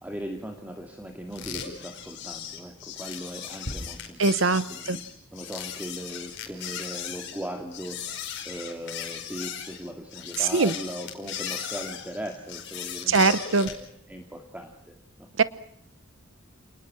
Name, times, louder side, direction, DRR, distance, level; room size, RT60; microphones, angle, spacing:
voice 1, 0.0-5.0 5.3-15.3, right 1 dB, 5° right, 3 dB, 2.3 m, -39 dB
sound 1, 1.3-13.8, left 8 dB, 55° left, 4.9 m, -37 dB
voice 2, 4.2-5.0 10.4-10.7 13.1-13.7 15.4-15.5, right 4 dB, 65° right, 16 dB, 0.9 m, -22 dB
29.5 x 20.0 x 6.2 m, 0.72 s
head